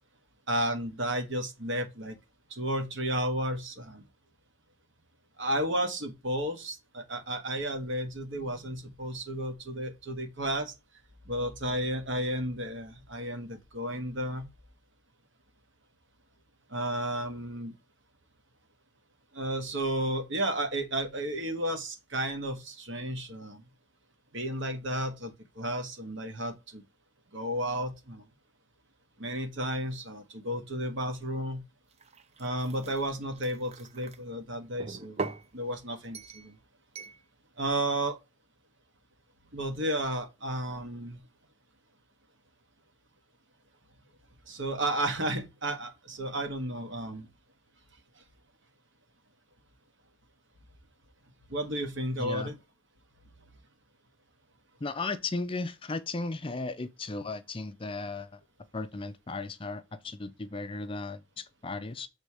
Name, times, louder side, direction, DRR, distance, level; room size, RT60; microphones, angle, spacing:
voice 1, 0.5-2.2 2.5-4.0 5.4-10.7 11.3-14.5 16.7-17.7 19.3-23.6 24.3-26.8 27.3-28.3 29.2-31.6 32.4-35.2 35.5-36.6 37.6-38.2 39.5-41.2 44.5-47.3 51.5-52.6, right 1 dB, 55° right, 1.6 m, -32 dB
sound 1, 31.9-34.2 34.8-35.5 36.1-36.5 36.9-37.2, right 3 dB, 30° right, 0.6 m, -40 dB
voice 2, 52.2-52.5 54.8-58.4 58.7-62.1, left 3 dB, 25° left, 0.5 m, -36 dB
6.7 x 3.5 x 4.8 m
head